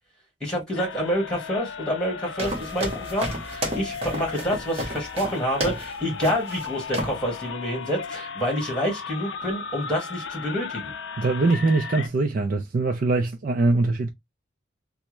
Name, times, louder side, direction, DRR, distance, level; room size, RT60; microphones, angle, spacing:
voice 1, 0.4-10.9, equal, 5° left, 1.5 m, -28 dB
sound 1, 0.7-12.1, left 5 dB, 75° left, 0.4 m, -36 dB
sound 2, 2.4-5.9 6.2-6.7 6.9-7.2, right 1 dB, 30° right, 1.1 m, -31 dB
voice 2, 11.2-14.1, right 3 dB, 45° right, 0.4 m, -22 dB
3.4 x 2.0 x 3.0 m
head